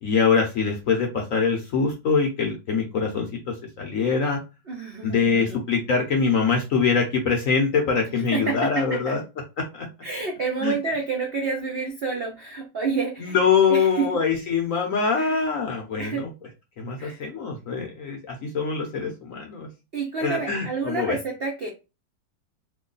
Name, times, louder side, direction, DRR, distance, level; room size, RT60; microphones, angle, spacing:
voice 1, 0.0-4.4 5.0-9.2 9.6-9.9 10.6-10.7 13.2-16.3 16.8-19.7 20.2-21.2, left 5 dB, 65° left, 2 dB, 0.8 m, -24 dB
voice 2, 4.7-5.6 8.3-9.2 10.0-13.4 13.7-14.1 15.2-15.4 16.0-16.2 17.0-17.2 19.9-21.7, right 4 dB, 85° right, 1 dB, 0.5 m, -29 dB
3.1 x 2.3 x 3.8 m, 0.27 s
omnidirectional pair, 2.1 m